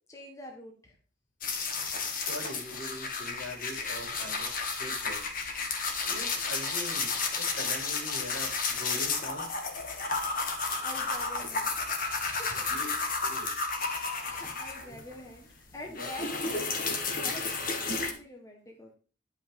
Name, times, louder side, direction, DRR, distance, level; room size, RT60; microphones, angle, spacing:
voice 1, 0.1-1.0 10.8-11.8 12.0-12.8 13.3-13.6 13.9-15.5 15.7-16.8 17.2-18.9, left 1 dB, 15° left, 0 dB, 1.5 m, -46 dB
sound 1, 1.4-15.2 15.5-18.1, left 4 dB, 45° left, 1.5 m, -32 dB
voice 2, 2.2-5.3 5.6-9.5 12.5-12.9 13.2-13.5 13.9-14.1 14.8-15.0 15.8-16.1, left 1 dB, 75° left, -1 dB, 4.2 m, -43 dB
10.5 x 5.5 x 4.8 m, 0.38 s
head